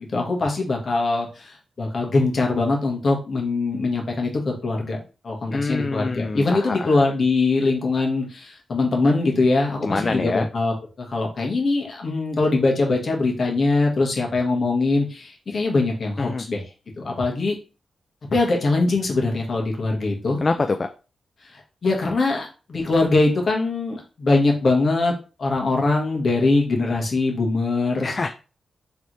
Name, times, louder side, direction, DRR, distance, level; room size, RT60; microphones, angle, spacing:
voice 1, 0.0-16.6 17.0-17.5 18.3-20.4 21.4-25.1 25.4-28.2, left 3 dB, 50° left, 0 dB, 1.4 m, -22 dB
voice 2, 5.5-7.0 9.8-10.5 16.2-16.4 20.4-20.9 28.0-28.3, left 3 dB, 35° left, 7 dB, 0.3 m, -25 dB
3.9 x 3.4 x 3.1 m, 0.34 s
wide cardioid pair, 105°, 0 cm